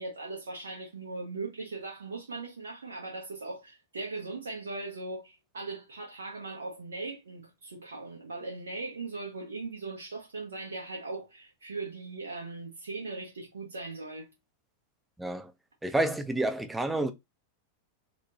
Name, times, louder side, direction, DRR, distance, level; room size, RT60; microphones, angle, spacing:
voice 1, 0.0-14.3, right 3 dB, 70° right, 0.8 m, -39 dB
voice 2, 15.2-15.5 15.8-17.1, right 1 dB, 5° right, 0.4 m, -29 dB
2.6 x 2.1 x 3.0 m
figure-of-eight pair, 90°, 0 cm